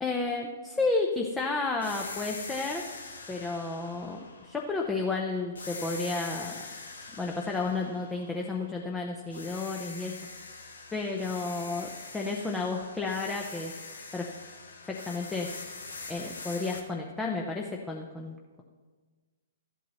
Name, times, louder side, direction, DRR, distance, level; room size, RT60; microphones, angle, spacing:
voice 1, 0.0-2.9 3.3-6.6 7.2-10.1 10.9-13.7 14.1-14.3 14.8-15.5 16.1-18.6, left 3 dB, 10° left, 0 dB, 0.8 m, -32 dB
sound 1, 1.8-5.1 5.6-8.9 9.3-16.8, left 3 dB, 75° left, 1.3 m, -43 dB
13.5 x 8.5 x 4.2 m, 1.4 s
figure-of-eight pair, 115°, 0 cm